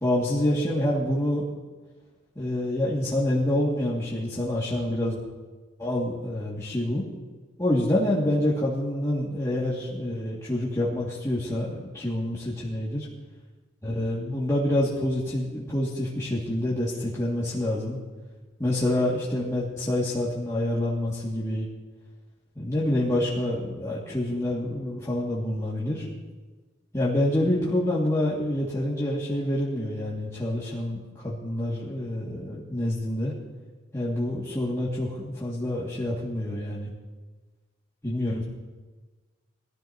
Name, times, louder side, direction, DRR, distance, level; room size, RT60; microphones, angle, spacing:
voice 1, 0.0-1.4 2.4-5.2 5.8-7.0 7.6-13.1 13.8-18.0 18.6-21.7 22.6-26.0 26.9-33.3 33.9-36.9 38.0-38.4, left 1 dB, 15° left, -8 dB, 2.2 m, -27 dB
21.5 x 14.5 x 2.9 m, 1.3 s
head